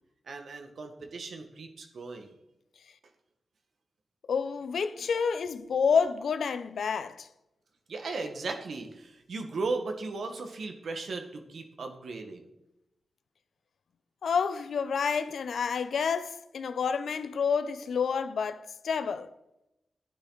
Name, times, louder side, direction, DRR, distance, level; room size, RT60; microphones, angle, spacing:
voice 1, 0.3-2.3 7.9-12.4, right 3 dB, 75° right, 1.7 m, -36 dB
voice 2, 4.3-7.3 14.2-19.3, left 6 dB, 80° left, 0.7 m, -29 dB
11.5 x 10.0 x 4.0 m
cardioid pair, 60°, 0 cm